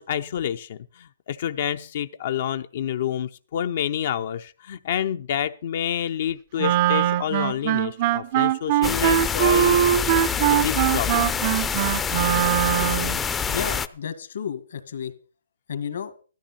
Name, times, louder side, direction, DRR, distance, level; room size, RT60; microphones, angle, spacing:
voice 1, 0.0-10.1 10.5-11.3, left 9 dB, 55° left, 8 dB, 0.6 m, -28 dB
Wind instrument woodwind instrument, 6.6-13.2, right 12 dB, 40° right, 0.6 m, -22 dB
sound 1, 8.8-13.9, left 6 dB, 10° left, 0.5 m, -26 dB
voice 2, 13.5-15.1 15.7-16.1, left 7 dB, 70° left, 10 dB, 1.9 m, -32 dB
14.0 x 13.0 x 4.3 m, 0.38 s
hypercardioid pair, 150°, 0 cm